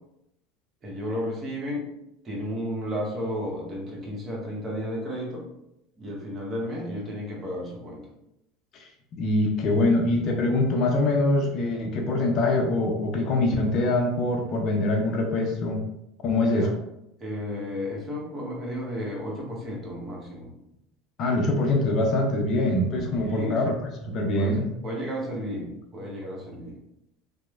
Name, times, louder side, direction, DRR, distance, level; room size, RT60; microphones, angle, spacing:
voice 1, 0.8-1.8 2.2-5.4 6.0-8.1 16.3-16.7 17.2-20.5 23.2-23.6 24.4-24.6 24.8-26.8, equal, 30° right, -3 dB, 1.0 m, -33 dB
voice 2, 8.7-15.8 16.2-16.7 21.2-24.7, left 2 dB, 50° left, 1 dB, 0.5 m, -24 dB
2.8 x 2.0 x 2.4 m, 0.81 s
hypercardioid pair, 85°, 0 cm